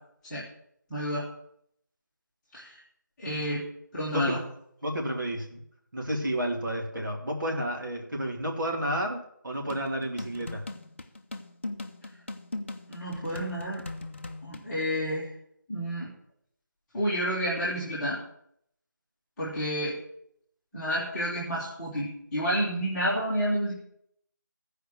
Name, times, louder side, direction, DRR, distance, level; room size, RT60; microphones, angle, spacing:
voice 1, 0.9-1.3 2.5-2.8 3.2-4.4 12.9-13.8 14.4-15.3 15.7-16.1 16.9-18.2 19.4-20.0 20.7-23.7, equal, 5° left, -13 dB, 1.1 m, -30 dB
voice 2, 4.1-4.4 4.8-5.6 5.9-10.6, right 1 dB, 70° right, 0 dB, 2.5 m, -31 dB
sound 1, 9.7-14.7, left 2 dB, 35° left, 0.6 m, -39 dB
13.5 x 4.9 x 6.4 m, 0.71 s
figure-of-eight pair, 175°, 11 cm